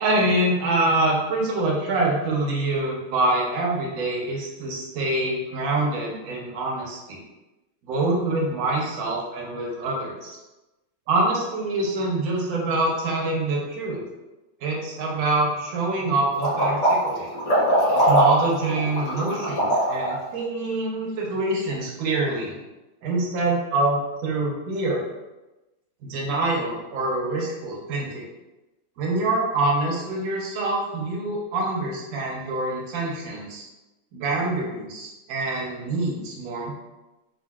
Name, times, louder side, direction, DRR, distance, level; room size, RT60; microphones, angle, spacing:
voice 1, 0.0-7.2 7.8-10.4 11.1-14.1 14.6-17.3 17.9-22.6 23.0-25.0 26.0-28.2 29.0-33.6 34.1-36.7, right 2 dB, 65° right, -3 dB, 0.9 m, -25 dB
sound 1, 16.4-20.2, right 1 dB, 35° left, 0.8 m, -21 dB
3.7 x 2.3 x 2.3 m, 1.1 s
omnidirectional pair, 2.2 m